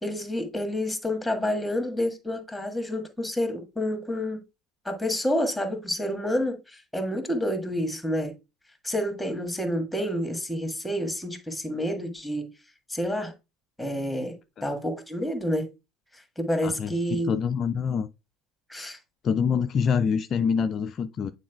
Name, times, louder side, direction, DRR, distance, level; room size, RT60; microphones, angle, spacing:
voice 1, 0.0-4.4 4.8-8.3 8.8-12.5 12.9-13.3 13.8-14.4 14.6-15.7 16.1-17.4 18.7-19.0, equal, 5° left, 1.6 m, -29 dB
voice 2, 16.6-18.1 19.2-21.3, left 6 dB, 40° left, 0.3 m, -26 dB
9.2 x 4.4 x 2.3 m
figure-of-eight pair, 65°, 0 cm